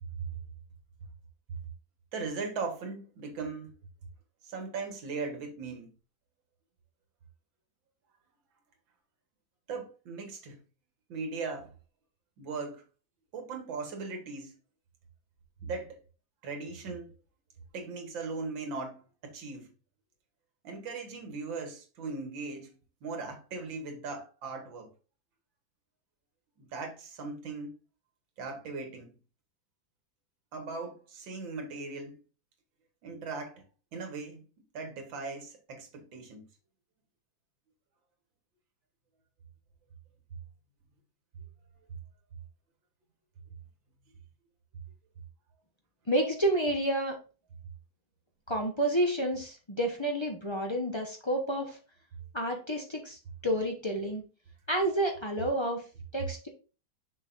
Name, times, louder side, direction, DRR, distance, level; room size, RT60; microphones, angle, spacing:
voice 1, 2.1-3.7 4.4-5.9 9.7-10.6 11.1-11.7 12.4-12.8 13.3-14.6 15.6-16.0 16.4-17.1 17.7-19.7 20.6-22.8 23.0-24.9 26.6-27.7 28.4-29.2 30.5-32.2 33.0-33.6 33.9-34.5 34.7-36.5, right 4 dB, 70° right, 2.1 m, -38 dB
voice 2, 46.1-47.2 48.5-51.8 52.3-54.2 54.7-55.8 56.1-56.5, right 1 dB, 35° left, 0.4 m, -30 dB
6.5 x 6.0 x 2.5 m
omnidirectional pair, 2.2 m